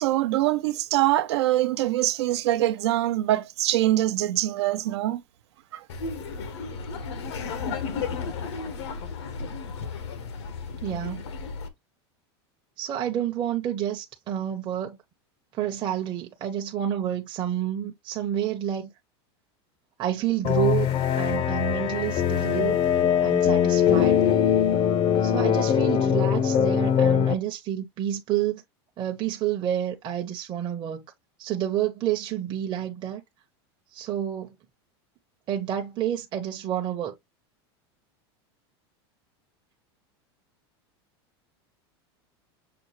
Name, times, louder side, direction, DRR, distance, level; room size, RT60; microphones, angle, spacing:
voice 1, 0.0-5.2, right 15 dB, 80° right, 0.7 m, -24 dB
Laughter, 5.9-11.7, left 5 dB, 85° left, 1.2 m, -33 dB
voice 2, 10.8-11.2 12.8-15.0 15.6-18.9 20.0-20.9 21.2-22.8 23.2-24.2 25.2-28.6 29.0-31.0 31.4-33.2 33.9-34.5 35.5-37.1, right 11 dB, 35° right, 0.8 m, -29 dB
sound 1, 20.4-27.3, left 8 dB, 40° left, 0.6 m, -22 dB
6.8 x 2.3 x 3.1 m
supercardioid pair, 125°, 14 cm